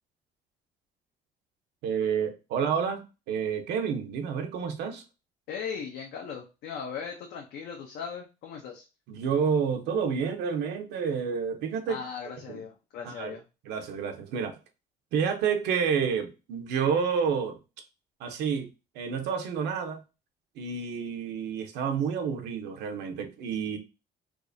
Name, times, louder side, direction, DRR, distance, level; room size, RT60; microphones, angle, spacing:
voice 1, 1.8-5.0 9.1-12.0 12.5-12.6 13.0-13.3 13.7-14.6 15.1-17.6 18.2-20.0 20.6-23.8, right 6 dB, 85° right, 6 dB, 0.8 m, -29 dB
voice 2, 5.5-8.8 11.9-13.4, left 6 dB, 75° left, 0 dB, 0.7 m, -38 dB
4.7 x 2.4 x 2.6 m, 0.29 s
cardioid pair, 110°, 17 cm